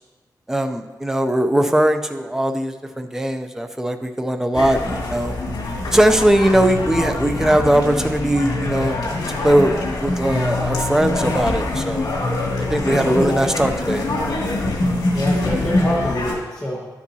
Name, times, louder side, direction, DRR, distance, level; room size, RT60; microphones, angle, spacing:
voice 1, 0.5-5.3 5.9-9.0 9.3-12.1 12.7-14.1, right 1 dB, 5° right, 6 dB, 0.5 m, -19 dB
sound 1, 4.5-16.4, left 2 dB, 70° left, 2.1 m, -24 dB
voice 2, 13.0-13.4 15.1-16.9, left 1 dB, 10° left, -6 dB, 1.3 m, -26 dB
12.0 x 7.3 x 2.7 m, 1.2 s
wide cardioid pair, 135°, 7 cm